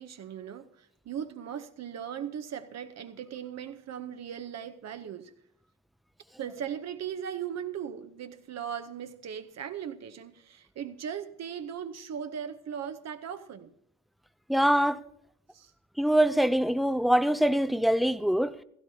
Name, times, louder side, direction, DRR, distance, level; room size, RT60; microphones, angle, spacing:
voice 1, 0.0-5.3 6.4-13.7 15.5-15.7, right 8 dB, 60° right, 0.8 m, -38 dB
voice 2, 14.5-15.0 16.0-18.5, right 1 dB, ahead, 0.4 m, -24 dB
16.5 x 15.0 x 2.8 m
cardioid pair, 90°, 30 cm